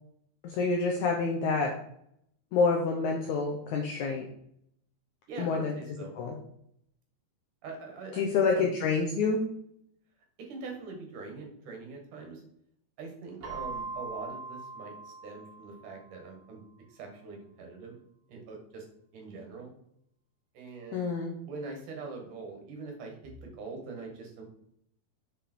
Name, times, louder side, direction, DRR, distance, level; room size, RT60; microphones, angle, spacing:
voice 1, 0.4-1.7 2.5-4.3 5.4-5.7 6.2-6.4 8.2-9.4 20.9-21.3, left 4 dB, 75° left, 1 dB, 1.7 m, -27 dB
voice 2, 5.3-6.1 7.6-8.2 8.5-9.2 10.4-12.4 13.0-16.6 16.9-18.0 18.3-18.9 19.1-19.7 20.5-21.1 21.4-24.4, right 4 dB, 60° right, 2 dB, 3.0 m, -43 dB
Keyboard (musical), 13.4-16.1, right 3 dB, 45° right, 2.7 m, -41 dB
7.2 x 5.2 x 4.5 m, 0.72 s
omnidirectional pair, 4.5 m